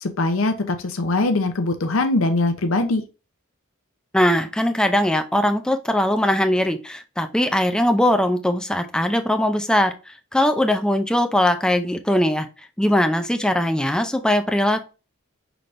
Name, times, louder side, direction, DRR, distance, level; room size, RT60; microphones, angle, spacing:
voice 1, 0.0-3.0, left 2 dB, 75° left, 7 dB, 0.7 m, -22 dB
voice 2, 4.1-12.5 12.8-14.8, left 1 dB, 5° left, 7 dB, 0.5 m, -20 dB
5.9 x 3.4 x 2.6 m, 0.30 s
head